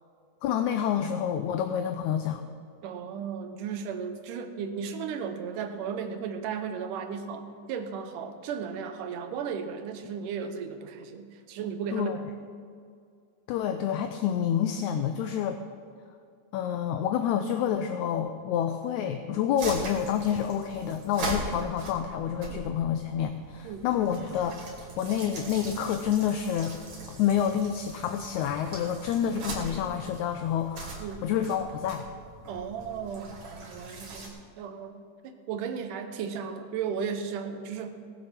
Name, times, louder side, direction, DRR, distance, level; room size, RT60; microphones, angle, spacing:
voice 1, 0.4-2.4 11.9-12.2 13.5-15.6 16.5-24.6 25.0-26.7 27.1-32.1, left 9 dB, 80° left, 8 dB, 1.8 m, -28 dB
voice 2, 2.8-12.5 22.5-22.7 23.6-23.8 31.0-31.3 32.5-35.0 35.2-37.9, right 6 dB, 75° right, 7 dB, 2.4 m, -35 dB
sound 1, 19.6-34.3, right 2 dB, 55° right, 3.7 m, -40 dB
18.5 x 7.6 x 5.8 m, 2.3 s
omnidirectional pair, 3.8 m